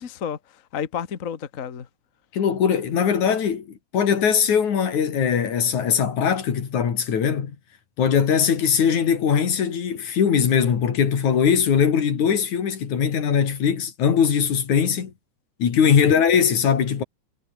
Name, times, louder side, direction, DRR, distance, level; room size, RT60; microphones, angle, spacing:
voice 1, 0.0-1.9 15.8-16.2, left 8 dB, 40° left, 1.2 m, -32 dB
voice 2, 2.3-7.6 8.0-15.1 15.6-17.0, left 7 dB, 80° left, 4.2 m, -21 dB
omnidirectional pair, 3.3 m